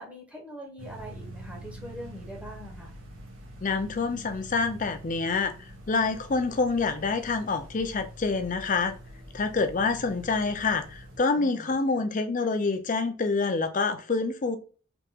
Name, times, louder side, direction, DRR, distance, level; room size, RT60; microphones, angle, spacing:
voice 1, 0.0-2.9 11.4-11.7, equal, 5° right, 0.9 m, -43 dB
sound 1, 0.8-11.2, right 1 dB, 85° right, 1.1 m, -45 dB
voice 2, 3.6-8.9 9.3-14.6, left 4 dB, 40° left, 0.5 m, -27 dB
3.5 x 2.9 x 2.7 m
head